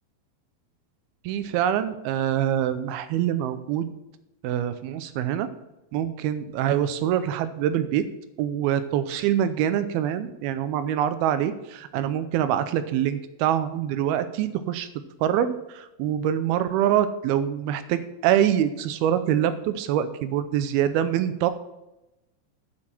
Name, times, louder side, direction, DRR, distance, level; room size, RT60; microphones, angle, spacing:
voice 1, 1.2-3.9 4.4-5.5 5.9-8.0 8.4-14.9 15.2-21.5, right 10 dB, 80° right, 12 dB, 2.5 m, -25 dB
8.6 x 7.9 x 4.4 m, 0.93 s
omnidirectional pair, 4.6 m